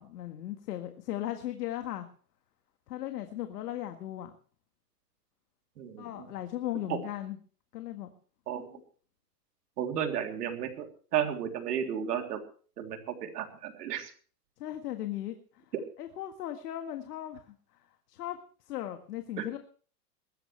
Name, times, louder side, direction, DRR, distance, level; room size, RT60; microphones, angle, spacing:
voice 1, 0.0-2.1 2.9-4.3 6.0-7.4 7.7-8.1 8.6-8.8 14.6-15.6 16.0-17.5 18.1-18.4 18.7-19.6, left 13 dB, 75° left, 6 dB, 1.8 m, -37 dB
voice 2, 5.8-6.3 6.9-7.0 8.5-8.7 9.8-10.9 11.1-12.4 12.8-14.1 19.4-19.5, right 9 dB, 75° right, 4 dB, 3.5 m, -33 dB
21.0 x 14.0 x 3.3 m, 0.42 s
hypercardioid pair, 130°, 48 cm